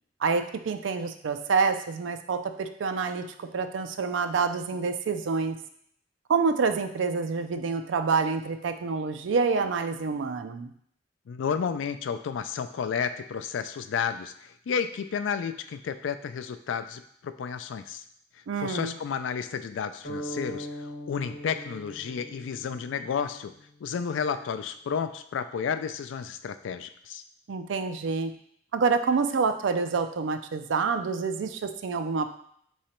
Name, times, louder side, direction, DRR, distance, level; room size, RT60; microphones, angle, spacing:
voice 1, 0.2-5.6 6.3-10.7 18.5-18.9 27.5-28.3 28.7-32.3, right 5 dB, 80° right, 8 dB, 0.4 m, -27 dB
voice 2, 11.3-18.0 18.6-23.5 23.8-27.2, left 6 dB, 80° left, 10 dB, 0.3 m, -32 dB
sound 1, 20.0-24.0, equal, 55° left, 1.2 m, -40 dB
3.8 x 3.2 x 4.3 m, 0.67 s
head